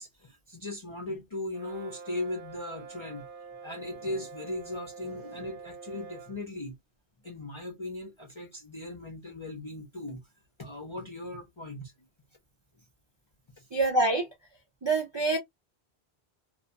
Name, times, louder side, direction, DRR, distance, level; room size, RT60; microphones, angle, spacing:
voice 1, 0.0-3.3 3.6-6.7 7.2-10.2 10.6-11.9 13.6-13.7, left 2 dB, 40° left, 0.4 m, -38 dB
Brass instrument, 1.5-6.4, right 5 dB, 60° right, 0.8 m, -46 dB
voice 2, 13.7-14.3 14.8-15.4, right 2 dB, 45° right, 0.3 m, -25 dB
2.3 x 2.2 x 2.5 m
omnidirectional pair, 1.1 m